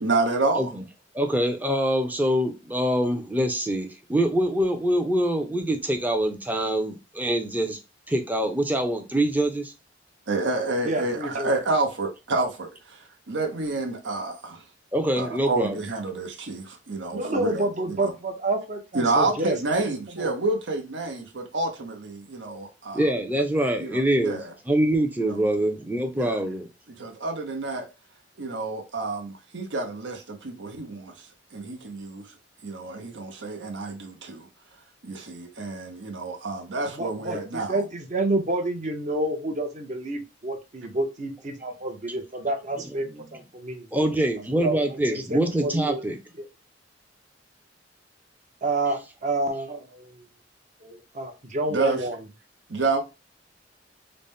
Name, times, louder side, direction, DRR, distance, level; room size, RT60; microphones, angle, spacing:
voice 1, 0.0-0.7 10.3-14.6 15.2-18.1 18.9-23.0 23.8-24.5 25.2-25.3 26.1-26.4 27.0-27.9 28.4-31.1 31.5-32.2 32.6-34.5 35.0-37.8 51.7-52.0 52.7-53.0, right 3 dB, 75° right, 0.8 m, -29 dB
voice 2, 1.1-7.8 8.1-9.7 14.9-15.8 22.9-24.4 24.7-26.7 43.1-43.2 43.9-46.2, right 1 dB, 10° right, 0.5 m, -24 dB
voice 3, 10.8-11.5 17.1-19.6 19.8-20.3 36.9-43.9 44.5-46.0 46.4-46.5 48.6-50.2 50.8-52.2, right 2 dB, 40° right, 0.8 m, -29 dB
4.0 x 2.1 x 3.5 m
head